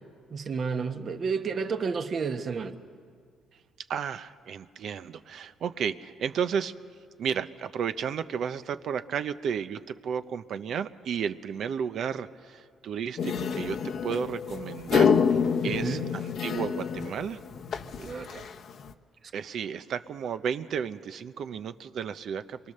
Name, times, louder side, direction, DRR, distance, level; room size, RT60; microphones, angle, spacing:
voice 1, 0.3-2.8 15.6-16.1 18.0-18.5, right 5 dB, 50° right, 7 dB, 1.3 m, -31 dB
voice 2, 3.9-6.7 7.2-15.1 15.6-17.4 19.3-22.6, right 7 dB, 70° right, 11 dB, 0.7 m, -33 dB
sound 1, 13.2-18.9, left 6 dB, 65° left, 0.9 m, -27 dB
28.0 x 23.0 x 6.7 m, 2.1 s
cardioid pair, 90°, 0 cm